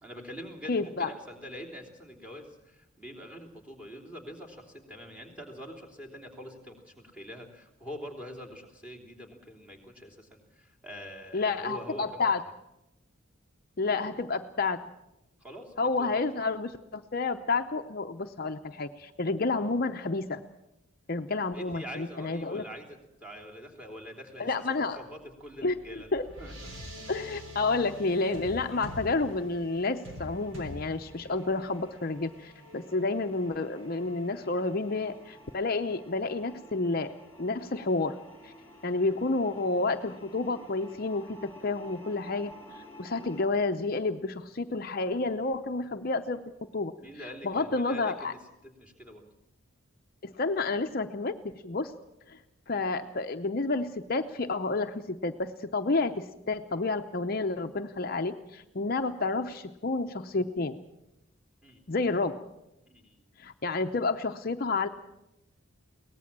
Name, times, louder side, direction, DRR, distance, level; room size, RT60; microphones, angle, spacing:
voice 1, 0.0-12.3 13.8-14.2 15.4-16.2 21.5-26.1 26.4-26.5 38.7-38.8 47.0-48.4 48.8-49.3 61.6-61.8 62.9-63.2, equal, 5° right, 2 dB, 3.3 m, -45 dB
voice 2, 0.7-1.1 11.3-12.4 13.8-14.8 15.8-20.4 21.1-22.6 24.4-25.0 25.6-26.2 27.1-37.1 37.4-38.2 38.4-38.5 38.8-46.4 46.7-46.9 47.4-48.3 50.2-51.9 52.3-52.4 52.7-60.8 61.9-62.4 63.4-64.9, left 3 dB, 45° left, 6 dB, 0.7 m, -30 dB
sound 1, 25.2-36.0, equal, 60° right, 3.3 m, -46 dB
sound 2, 29.7-43.5, equal, 15° left, 3.6 m, -53 dB
23.0 x 18.0 x 7.4 m, 0.90 s
head